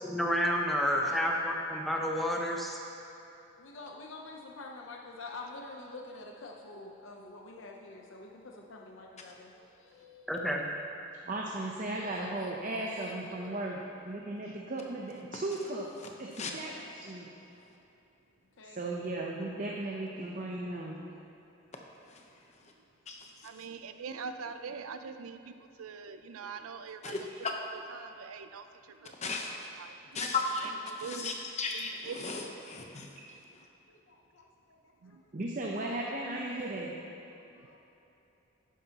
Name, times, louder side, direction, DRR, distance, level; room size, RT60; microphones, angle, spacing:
voice 1, 0.0-2.8 10.3-10.6, equal, ahead, -1 dB, 0.6 m, -30 dB
voice 2, 0.8-1.2 3.6-10.3 11.8-13.9 18.6-19.1 26.4-26.7 28.0-28.1 29.0-29.7 33.5-33.6 33.9-34.8 35.1-35.3 37.4-37.8, left 3 dB, 65° left, 0 dB, 0.7 m, -48 dB
voice 3, 11.3-13.8 14.0-15.9 16.2-17.3 18.7-21.0 35.3-36.9, right 2 dB, 40° right, -2 dB, 0.7 m, -36 dB
voice 4, 23.4-29.3 29.8-30.2 30.6-31.4 31.7-32.5 35.0-35.2, right 5 dB, 90° right, 9 dB, 0.5 m, -44 dB
voice 5, 27.0-27.5 29.2-29.7 30.1-30.7 31.0-31.9 32.2-33.1, left 4 dB, 30° left, 2 dB, 0.8 m, -35 dB
11.5 x 9.4 x 2.9 m, 2.9 s
head